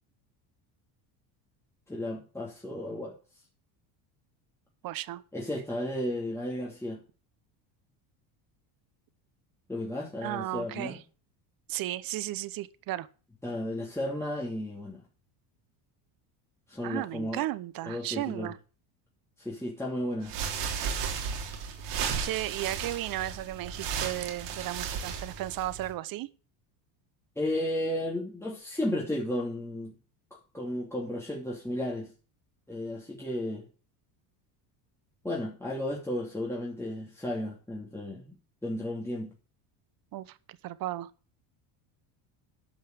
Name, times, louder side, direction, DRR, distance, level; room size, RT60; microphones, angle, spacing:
voice 1, 1.9-3.2 5.3-7.0 9.7-11.0 13.4-15.0 16.7-17.4 17.9-18.5 19.4-20.3 27.4-29.9 30.3-32.1 32.7-33.6 35.2-38.3 38.6-39.3, left 1 dB, 5° left, 2.8 m, -33 dB
voice 2, 4.8-5.2 10.2-11.0 11.7-13.1 16.8-18.6 21.8-21.9 22.2-26.3 40.1-40.4 40.6-41.1, right 15 dB, 50° right, 0.9 m, -34 dB
sound 1, 20.2-25.9, right 6 dB, 65° right, 3.6 m, -34 dB
11.0 x 5.6 x 7.8 m
supercardioid pair, 110°, 46 cm